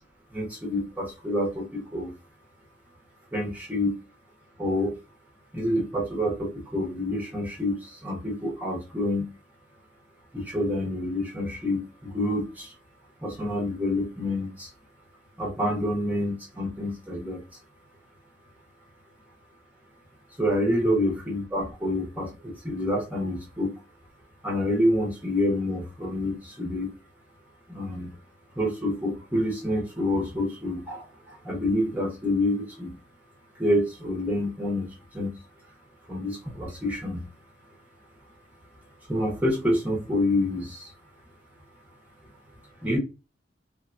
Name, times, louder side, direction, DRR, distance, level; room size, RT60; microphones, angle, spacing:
voice 1, 0.3-2.1 3.3-3.9 4.6-4.9 5.5-9.3 10.3-12.7 13.2-14.7 15.4-17.4 20.4-23.7 24.4-26.9 27.7-28.1 28.6-32.9 33.6-35.3 36.1-37.2 39.1-40.9 42.8-43.0, left 1 dB, 10° right, -3 dB, 0.6 m, -27 dB
3.1 x 2.1 x 2.4 m, 0.28 s
head